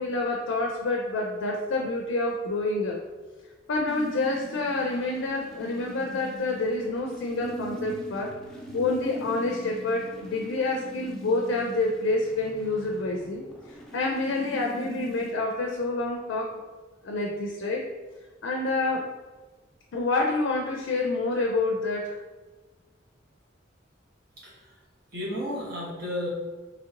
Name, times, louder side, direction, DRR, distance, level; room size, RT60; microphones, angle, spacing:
voice 1, 0.0-3.0 3.7-8.3 8.7-13.4 13.9-16.6 17.0-17.9 18.4-19.1 19.9-22.2, left 2 dB, 80° left, 0 dB, 0.4 m, -28 dB
sound 1, 3.9-15.3, equal, 5° left, 0.4 m, -41 dB
voice 2, 24.4-24.8 25.1-26.3, left 1 dB, 55° right, -6 dB, 1.1 m, -33 dB
3.1 x 2.8 x 2.5 m, 1.2 s
head